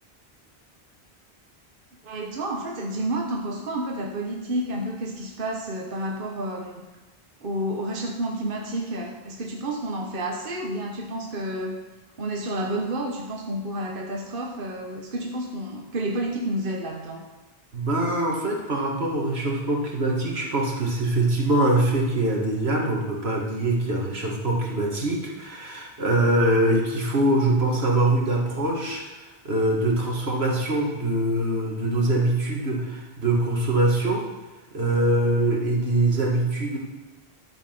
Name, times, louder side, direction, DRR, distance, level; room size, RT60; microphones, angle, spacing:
voice 1, 2.0-6.8 7.4-11.8 12.2-17.2, right 1 dB, 60° right, 1 dB, 1.2 m, -30 dB
voice 2, 17.7-34.2 34.7-36.8, right 1 dB, 85° right, -1 dB, 2.2 m, -23 dB
12.0 x 7.3 x 5.8 m, 1.2 s
omnidirectional pair, 1.0 m